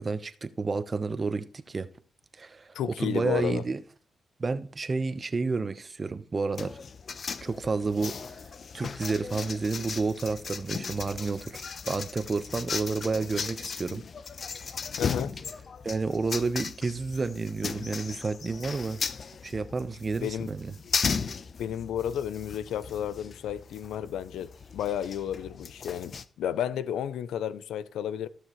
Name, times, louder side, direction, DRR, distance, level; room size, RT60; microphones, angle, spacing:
voice 1, 0.0-1.9 2.4-3.8 4.4-6.8 7.4-8.2 8.7-14.0 15.8-19.0 19.4-20.7, right 4 dB, 40° right, 1.0 m, -30 dB
voice 2, 2.7-3.6 15.0-15.3 20.2-20.5 21.6-28.3, left 10 dB, 85° left, 0.5 m, -32 dB
sound 1, 6.6-26.2, left 5 dB, 55° left, 0.8 m, -37 dB
16.0 x 6.5 x 3.2 m
cardioid pair, 65°, 0 cm